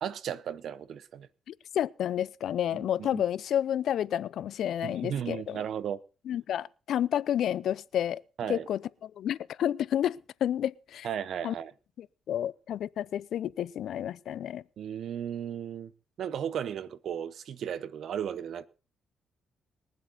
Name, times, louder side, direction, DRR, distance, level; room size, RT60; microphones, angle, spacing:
voice 1, 0.0-1.3 2.7-3.2 4.8-6.0 8.4-8.7 11.0-11.7 14.8-15.9 16.2-18.7, right 9 dB, 65° right, 0.7 m, -35 dB
voice 2, 1.5-5.6 6.3-8.2 8.5-8.8 9.2-11.1 11.4-11.5 12.0-14.6, left 10 dB, 70° left, 0.5 m, -30 dB
21.5 x 7.7 x 4.0 m
cardioid pair, 90°, 0 cm